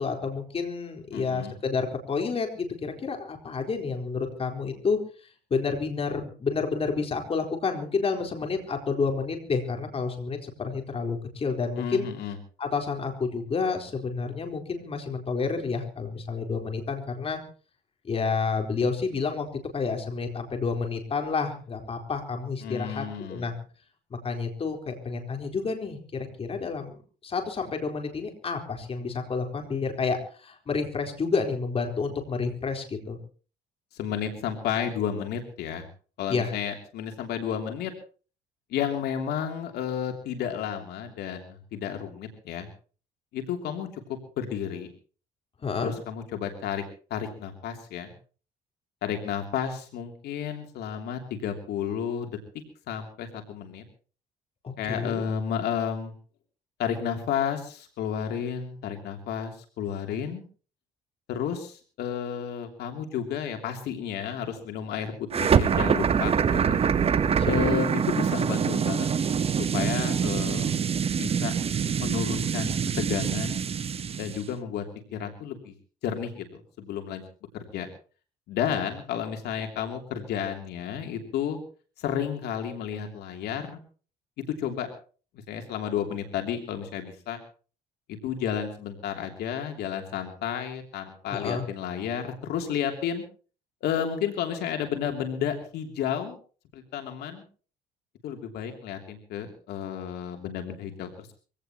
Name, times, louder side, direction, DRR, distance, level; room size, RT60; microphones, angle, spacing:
voice 1, 0.0-5.0 5.5-12.1 12.6-17.4 18.0-19.5 19.7-23.5 24.1-27.0 27.2-33.2 36.3-36.5 45.6-45.9 54.6-55.2 67.4-67.6 91.3-91.7, left 4 dB, 35° left, 4 dB, 4.2 m, -29 dB
voice 2, 1.1-1.5 11.8-12.4 22.6-23.5 33.9-35.9 36.2-37.9 38.7-42.7 43.3-43.9 44.4-44.9 45.8-46.8 47.1-48.1 49.0-52.4 52.9-53.8 54.8-56.1 56.8-60.4 61.3-66.8 67.4-69.1 69.4-70.7 71.2-71.5 72.0-73.6 74.2-74.8 75.1-75.7 76.0-77.2 77.7-77.9 78.5-81.6 82.0-83.8 84.6-84.9 85.5-87.4 88.1-93.2 93.8-96.4 96.7-97.4 98.2-101.3, left 8 dB, 75° left, 4 dB, 3.0 m, -32 dB
sound 1, 65.3-74.4, right 7 dB, 35° right, 1.0 m, -25 dB
24.0 x 17.0 x 3.0 m, 0.39 s
cardioid pair, 110°, 17 cm